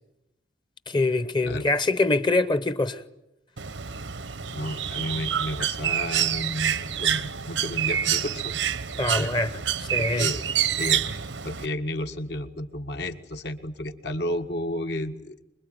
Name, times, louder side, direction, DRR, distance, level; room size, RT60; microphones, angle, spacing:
voice 1, 0.9-3.0 9.0-9.5 9.9-10.3, left 2 dB, 25° left, 0.9 m, -24 dB
Bird, 3.6-11.7, right 9 dB, 85° right, 1.1 m, -27 dB
voice 2, 4.5-8.6 9.2-9.3 10.0-10.4 10.8-11.1 11.4-15.4, left 1 dB, 65° left, 1.7 m, -32 dB
25.0 x 22.5 x 9.2 m
head